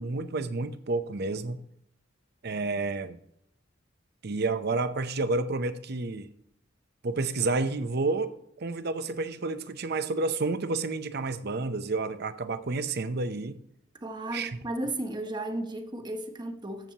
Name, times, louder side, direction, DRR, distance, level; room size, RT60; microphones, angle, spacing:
voice 1, 0.0-1.6 2.4-3.2 4.2-6.3 7.0-13.6 14.3-14.5, right 3 dB, 55° right, 0.7 m, -30 dB
voice 2, 14.0-16.9, right 1 dB, 20° right, 1.1 m, -34 dB
14.5 x 6.9 x 2.9 m
head